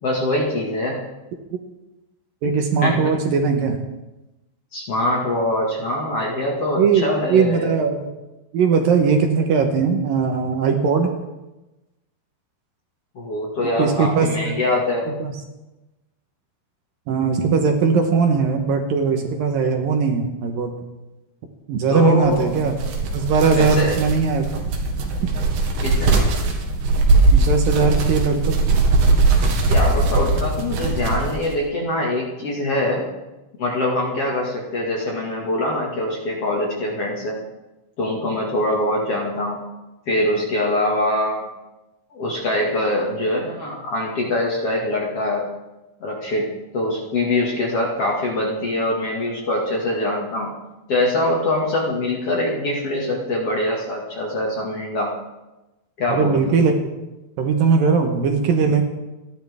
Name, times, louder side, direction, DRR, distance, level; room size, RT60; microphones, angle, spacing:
voice 1, 0.0-1.0 2.8-3.1 4.7-7.7 13.1-15.1 21.9-22.6 23.5-24.0 25.8-26.3 29.7-33.0 33.6-37.4 38.0-39.6 40.1-41.5 42.1-45.5 46.0-46.5 46.7-50.5 50.9-55.1 56.0-56.5, left 1 dB, 45° left, -2 dB, 2.3 m, -23 dB
voice 2, 2.4-3.8 6.8-8.1 8.5-11.1 13.8-14.5 15.1-15.3 17.1-20.7 21.7-22.7 23.1-24.5 27.3-28.6 56.1-56.8 57.4-58.8, right 5 dB, 65° right, 4 dB, 2.6 m, -19 dB
sound 1, 22.2-31.5, right 3 dB, 90° right, 4.0 m, -20 dB
28.5 x 11.5 x 3.6 m, 1.0 s
omnidirectional pair, 4.8 m